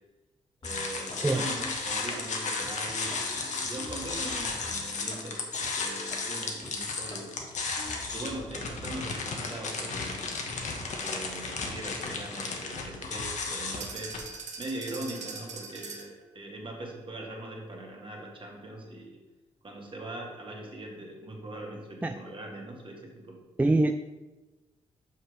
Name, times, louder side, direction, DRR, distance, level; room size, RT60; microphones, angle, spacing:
sound 1, 0.6-14.2, left 4 dB, 70° left, 1.2 m, -34 dB
sound 2, 0.6-1.3 1.5-2.2 2.6-5.2 5.5-5.7 6.1-6.2 6.6-8.6, left 2 dB, 40° left, 1.5 m, -46 dB
voice 1, 0.6-7.4 8.1-10.4 11.0-14.1 14.6-19.2 19.6-23.4, right 2 dB, 45° right, -1 dB, 2.1 m, -41 dB
sound 3, 13.7-16.2, right 4 dB, 70° right, 1.0 m, -41 dB
voice 2, 23.6-23.9, right 2 dB, 10° right, 7 dB, 0.4 m, -24 dB
5.5 x 5.5 x 5.1 m, 1.2 s
cardioid pair, 60°, 13 cm